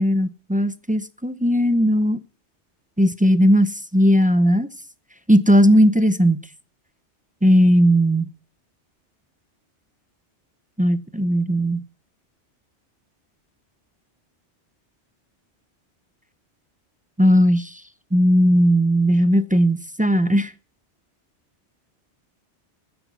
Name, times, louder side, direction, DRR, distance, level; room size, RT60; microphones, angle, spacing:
voice 1, 0.0-2.2 3.0-4.7 5.3-6.4 7.4-8.3 10.8-11.8 17.2-17.7 18.1-20.5, equal, 10° right, 0.6 m, -17 dB
12.0 x 9.9 x 6.1 m
omnidirectional pair, 1.2 m